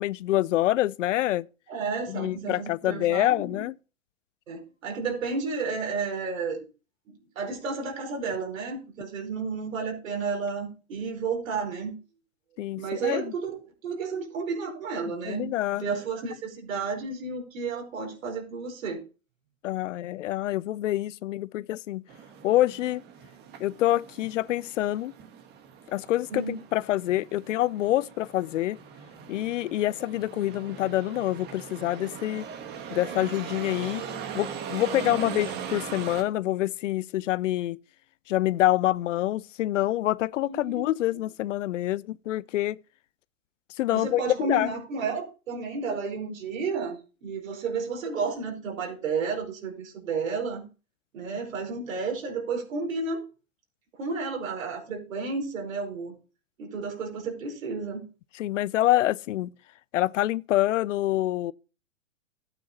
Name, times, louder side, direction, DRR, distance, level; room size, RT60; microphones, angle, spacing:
voice 1, 0.0-1.5 2.1-3.7 12.6-13.2 15.3-15.8 19.6-22.0 22.4-23.0 23.6-25.1 25.9-28.8 29.3-32.4 32.9-34.0 34.3-37.8 38.3-42.8 43.8-44.7 58.4-59.5 59.9-61.5, left 14 dB, 65° left, 0.5 m, -26 dB
voice 2, 1.7-3.6 4.5-6.6 7.1-12.0 12.8-19.0 26.3-26.6 35.1-35.4 40.4-40.8 43.9-50.7 51.1-53.2 53.9-56.1 56.6-58.1, right 4 dB, 75° right, 4.5 m, -32 dB
sound 1, 22.1-36.2, right 7 dB, 25° right, 1.4 m, -40 dB
12.5 x 9.1 x 2.9 m
hypercardioid pair, 135°, 40 cm